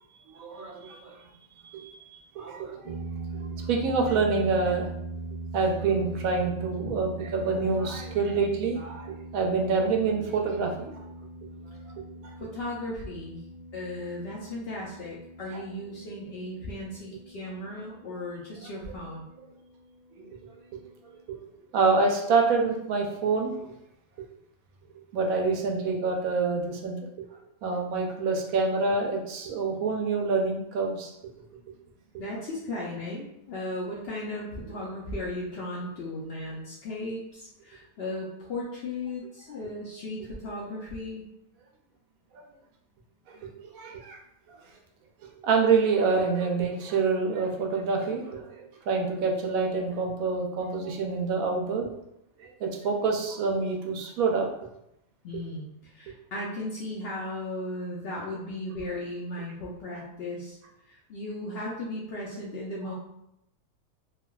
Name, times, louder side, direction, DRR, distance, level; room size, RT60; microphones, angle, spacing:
voice 1, 0.3-1.2 1.6-1.9 2.4-3.0 3.3-4.9 5.5-11.0 12.2-12.3 15.5-15.6 20.2-20.3 21.3-21.4 21.7-23.7 25.1-27.0 27.6-31.1 42.3-42.4 43.3-44.2 44.5-44.6 45.4-51.9 52.4-54.5, right 4 dB, 80° right, 1 dB, 1.0 m, -27 dB
sound 1, 2.8-21.3, right 3 dB, 20° left, 0.7 m, -41 dB
voice 2, 12.1-13.4 13.7-19.3 32.2-41.3 43.3-43.5 55.2-60.6 60.9-62.9, left 1 dB, 65° left, -4 dB, 0.6 m, -36 dB
3.2 x 2.2 x 2.2 m, 0.82 s
omnidirectional pair, 1.5 m